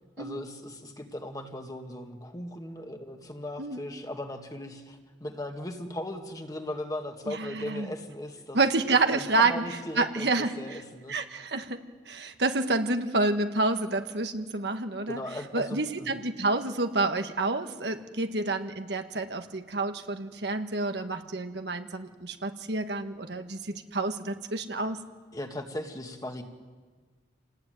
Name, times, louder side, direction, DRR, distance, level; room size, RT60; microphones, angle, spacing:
voice 1, 0.2-8.6 9.1-11.1 15.1-16.1 25.3-26.4, left 1 dB, 20° left, 4 dB, 2.0 m, -38 dB
voice 2, 7.3-7.9 8.5-9.6 10.0-10.8 11.1-11.8 12.1-15.2 15.5-25.0, right 3 dB, 65° right, 6 dB, 1.7 m, -29 dB
28.0 x 19.0 x 9.4 m, 1.4 s
head